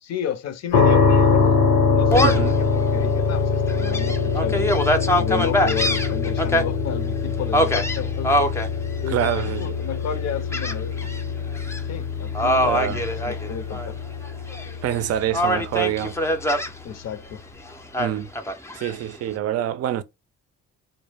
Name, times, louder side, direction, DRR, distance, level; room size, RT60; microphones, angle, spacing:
voice 1, 0.0-1.6 1.9-4.7 5.1-8.4 9.0-11.1 11.9-13.9 16.8-17.4, left 8 dB, 60° left, 0.6 m, -32 dB
sound 1, 0.7-15.6, left 5 dB, 85° left, 0.9 m, -23 dB
Gull seagull, 2.1-2.5 3.0-3.1 3.7-6.6 7.5-8.7 9.2-9.7 10.5-11.2 11.5-11.8 12.3-13.9 14.2-15.0 15.3-16.7 17.9-18.9, equal, 10° left, 0.4 m, -23 dB
voice 2, 2.2-2.6 9.1-9.8 12.6-13.0 14.8-16.2 18.0-18.3 18.7-20.0, right 11 dB, 55° right, 0.4 m, -26 dB
2.1 x 2.0 x 3.3 m
cardioid pair, 90°, 30 cm